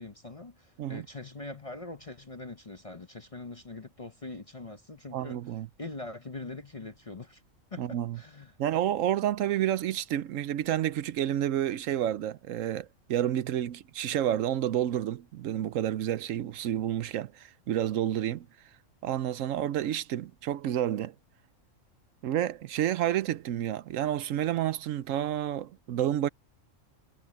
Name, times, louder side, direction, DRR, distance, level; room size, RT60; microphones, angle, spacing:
voice 1, 0.0-5.4 5.8-7.4 7.7-8.6, left 2 dB, 30° left, 0.8 m, -42 dB
voice 2, 5.1-5.7 7.8-8.2 8.6-18.5 19.0-21.1 22.2-26.3, right 11 dB, 80° right, 1.0 m, -30 dB
omnidirectional pair, 1.4 m